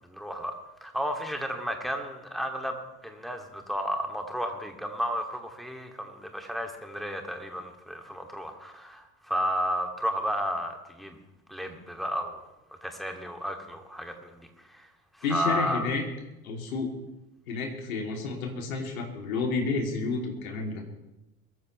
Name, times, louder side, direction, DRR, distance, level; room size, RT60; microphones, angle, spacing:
voice 1, 0.1-0.6 0.8-2.8 3.0-11.2 11.5-12.4 12.8-14.9 15.3-15.9, equal, ahead, 3 dB, 2.5 m, -32 dB
voice 2, 15.2-16.0 16.4-16.9 17.5-20.8, left 4 dB, 65° left, 2 dB, 3.0 m, -30 dB
22.5 x 14.0 x 3.3 m, 0.97 s
figure-of-eight pair, 70°, 44 cm